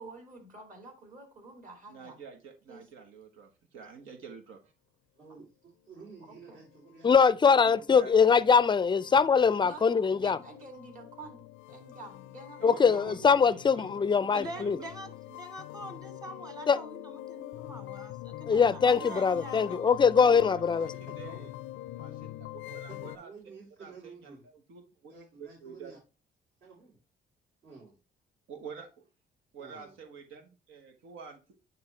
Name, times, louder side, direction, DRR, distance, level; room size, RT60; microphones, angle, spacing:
voice 1, 0.0-2.2 2.7-2.9 5.3-5.4 6.2-6.6 9.6-13.3, right 2 dB, 40° right, 2.7 m, -49 dB
voice 2, 1.9-4.7 7.9-8.1 12.6-13.9 14.3-15.1 18.9-19.3 19.5-20.6 21.2-21.5 22.0-23.3 23.8-25.1 25.4-25.9 28.5-28.9 29.5-31.4, right 5 dB, 85° right, 1.3 m, -47 dB
voice 3, 5.1-7.1 7.4-7.9 20.6-21.5 22.9-24.4 25.1-26.0 26.6-27.0 27.6-28.0 29.6-30.0, right 4 dB, 65° right, 3.6 m, -51 dB
sound 1, 6.2-23.2, left 15 dB, 90° left, 0.4 m, -44 dB
voice 4, 7.0-10.4 12.6-14.8 16.7-16.8 18.5-20.9, left 6 dB, 25° left, 0.4 m, -22 dB
voice 5, 14.3-19.8, right 1 dB, 20° right, 1.6 m, -45 dB
9.6 x 3.5 x 3.3 m
cardioid pair, 90°, 20 cm